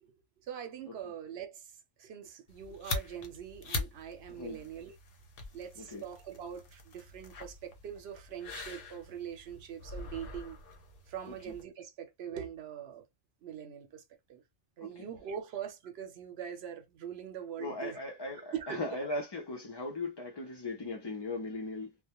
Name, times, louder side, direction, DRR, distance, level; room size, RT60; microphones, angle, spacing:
voice 1, 0.5-1.6 2.0-4.9 5.5-10.6 11.1-13.0 13.4-14.0 14.3-14.4 14.8-18.0 18.5-19.0, right 8 dB, 85° right, 0.9 m, -42 dB
sound 1, 2.5-11.6, left 3 dB, 65° left, 0.8 m, -43 dB
voice 2, 4.3-4.7 5.8-6.0 11.3-11.5 14.8-15.1 17.6-22.0, left 2 dB, 35° left, 0.4 m, -39 dB
2.2 x 2.1 x 2.8 m
omnidirectional pair, 1.0 m